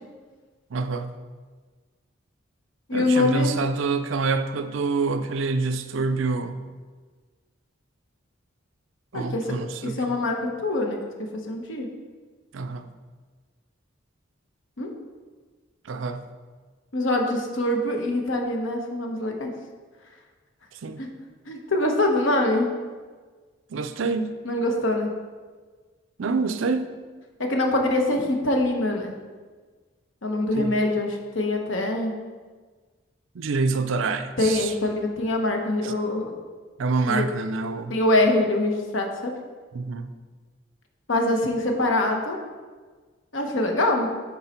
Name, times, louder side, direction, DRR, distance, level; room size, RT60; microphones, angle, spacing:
voice 1, 0.7-1.1 2.9-6.6 9.1-10.2 12.5-12.9 15.8-16.2 20.7-21.0 23.7-24.4 26.2-26.9 30.5-30.8 33.3-34.7 35.8-35.9 36.8-38.0 39.7-40.1, right 4 dB, 70° right, 9 dB, 0.5 m, -27 dB
voice 2, 2.9-3.5 9.1-9.5 9.8-11.9 14.8-14.9 16.9-19.5 21.0-21.1 21.5-22.7 24.4-25.1 27.4-29.1 30.2-32.1 34.4-36.3 37.1-37.2 37.9-39.4 41.1-42.4 43.3-44.1, left 2 dB, 70° left, 2 dB, 1.1 m, -24 dB
9.4 x 4.1 x 4.4 m, 1.4 s
head